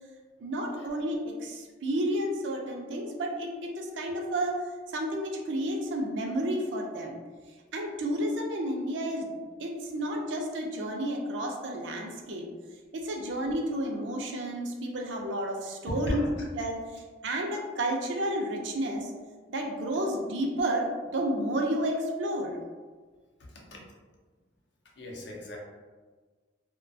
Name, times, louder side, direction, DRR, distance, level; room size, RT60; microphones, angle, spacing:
voice 1, 0.4-4.6 4.9-7.1 7.7-12.4 12.9-16.2 16.5-19.1 19.5-22.6, right 1 dB, 70° right, 1 dB, 0.4 m, -31 dB
voice 2, 15.9-16.3 23.5-23.8 25.0-25.6, equal, 60° left, -2 dB, 0.5 m, -35 dB
2.3 x 2.1 x 2.6 m, 1.4 s
head